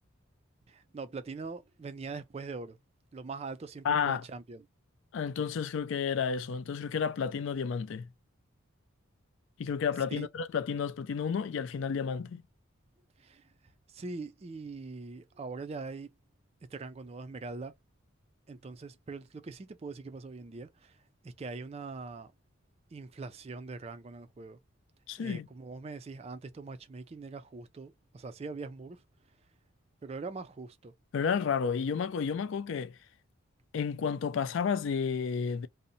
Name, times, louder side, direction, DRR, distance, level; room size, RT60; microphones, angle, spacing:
voice 1, 0.7-2.8 3.1-4.6 10.1-10.3 13.2-13.5 13.9-16.1 16.7-17.7 18.5-21.0 21.2-22.3 22.9-24.6 25.2-29.0 30.0-30.9, right 4 dB, 30° right, 0.3 m, -42 dB
voice 2, 3.8-4.2 5.1-8.1 9.6-12.4 25.1-25.5 31.1-33.0 33.7-35.7, left 6 dB, 65° left, 0.3 m, -31 dB
2.7 x 2.1 x 2.5 m
head